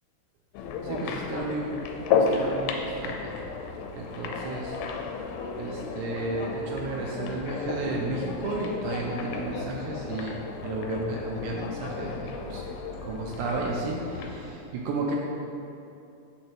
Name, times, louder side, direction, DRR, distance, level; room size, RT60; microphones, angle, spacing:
sound 1, 0.5-14.5, left 5 dB, 85° left, 2.5 m, -33 dB
voice 1, 0.8-1.8 2.1-3.3 3.9-4.8 5.6-12.6 13.0-15.2, right 2 dB, 85° right, -2 dB, 2.7 m, -33 dB
6.5 x 6.2 x 2.9 m, 2.7 s
omnidirectional pair, 4.7 m